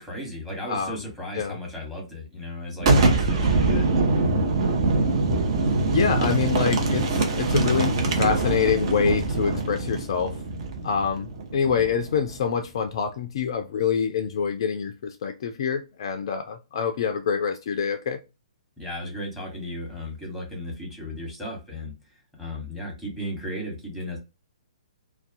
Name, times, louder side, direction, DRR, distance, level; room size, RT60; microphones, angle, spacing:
voice 1, 0.0-3.9 18.8-21.9 22.4-24.2, left 1 dB, ahead, 0 dB, 1.0 m, -35 dB
voice 2, 0.6-1.0 1.3-1.6 5.9-10.3 10.8-18.2, left 6 dB, 45° left, 6 dB, 0.3 m, -26 dB
Boom, 2.8-12.4, right 3 dB, 45° right, 0.6 m, -23 dB
2.3 x 2.2 x 2.4 m, 0.27 s
figure-of-eight pair, 125°, 4 cm